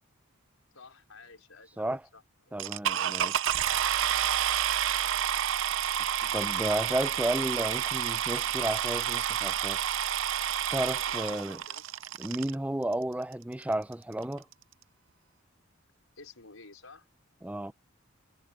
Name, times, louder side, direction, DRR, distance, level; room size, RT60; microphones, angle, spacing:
voice 1, 0.7-2.6 2.9-3.5 11.1-11.8 16.1-17.1, left 4 dB, 80° left, 4.7 m, -52 dB
voice 2, 2.5-3.3 6.3-9.8 10.7-11.6 12.2-14.5 17.4-17.7, right 1 dB, 5° right, 0.4 m, -32 dB
sound 1, 2.6-12.5 13.3-13.4 13.9-14.0 14.2-14.5, right 10 dB, 65° right, 0.6 m, -29 dB
head